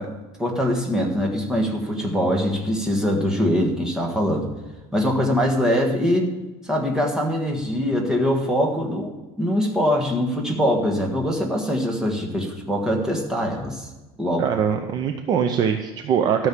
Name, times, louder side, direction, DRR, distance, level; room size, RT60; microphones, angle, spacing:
voice 1, 0.0-4.5 4.9-6.3 6.6-13.9 14.2-14.5, equal, 5° right, 0 dB, 1.4 m, -23 dB
voice 2, 14.4-16.5, right 7 dB, 30° right, 6 dB, 0.6 m, -22 dB
13.0 x 6.3 x 7.2 m, 1.1 s
cardioid pair, 175°, 13 cm